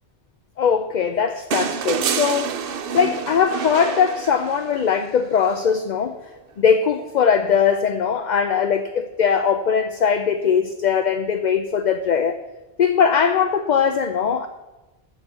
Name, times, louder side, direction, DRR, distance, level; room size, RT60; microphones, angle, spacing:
voice 1, 0.6-6.3 6.6-12.4 12.8-14.5, left 7 dB, 50° left, 7 dB, 0.7 m, -20 dB
sound 1, 1.5-4.8 6.4-6.5, right 7 dB, 65° right, 0.8 m, -27 dB
9.4 x 7.1 x 6.8 m, 1.1 s
omnidirectional pair, 1.0 m